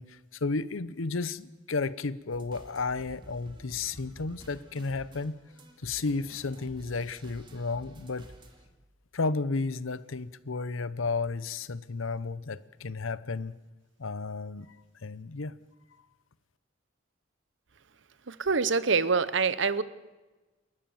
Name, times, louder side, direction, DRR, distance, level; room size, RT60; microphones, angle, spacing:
voice 1, 0.0-5.3 5.8-8.3 9.1-13.6 14.0-14.7 15.0-15.5, left 3 dB, 80° left, 17 dB, 0.8 m, -33 dB
sound 1, 2.3-8.7, right 1 dB, 25° right, 2.2 m, -51 dB
voice 2, 18.3-19.8, right 5 dB, 65° right, 16 dB, 0.9 m, -25 dB
28.5 x 13.5 x 7.1 m, 1.2 s
head